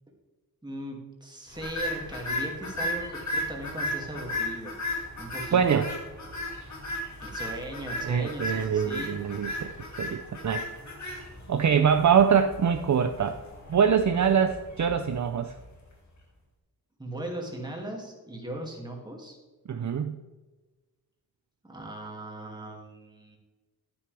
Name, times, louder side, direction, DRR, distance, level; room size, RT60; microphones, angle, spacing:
voice 1, 0.6-5.6 7.2-9.1 17.0-19.4 21.6-23.4, right 1 dB, 10° right, 0 dB, 2.4 m, -38 dB
sound 1, 1.5-15.9, left 1 dB, 50° left, 2.6 m, -36 dB
voice 2, 5.5-5.9 8.0-9.7 10.0-10.6 11.5-13.4 13.7-15.5 19.7-20.2, right 7 dB, 50° right, 6 dB, 0.6 m, -24 dB
11.0 x 10.0 x 3.4 m, 1.3 s
wide cardioid pair, 135°, 36 cm